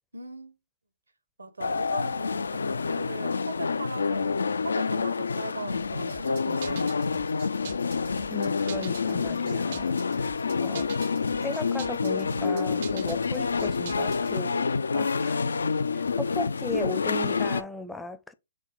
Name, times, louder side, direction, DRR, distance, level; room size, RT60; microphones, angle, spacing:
voice 1, 0.1-0.6 1.4-7.1 14.3-15.0, right 2 dB, 90° right, 1.0 m, -39 dB
sound 1, 1.6-17.6, left 5 dB, 80° left, 0.3 m, -28 dB
sound 2, 6.1-14.4, right 9 dB, 55° right, 0.4 m, -44 dB
voice 2, 8.3-11.1 11.4-14.5 14.9-15.4 15.9-18.3, left 3 dB, 5° left, 0.4 m, -37 dB
6.0 x 2.1 x 3.8 m
hypercardioid pair, 130°, 0 cm